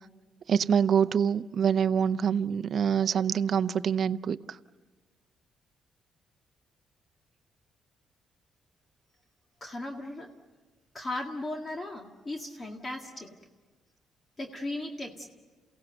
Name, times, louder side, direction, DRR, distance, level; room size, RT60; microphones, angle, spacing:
voice 1, 0.5-4.6, right 7 dB, 55° right, 0.6 m, -25 dB
voice 2, 9.6-10.3 10.9-13.4 14.4-15.3, left 2 dB, 30° left, 1.9 m, -37 dB
29.0 x 17.0 x 8.0 m
cardioid pair, 90°, 0 cm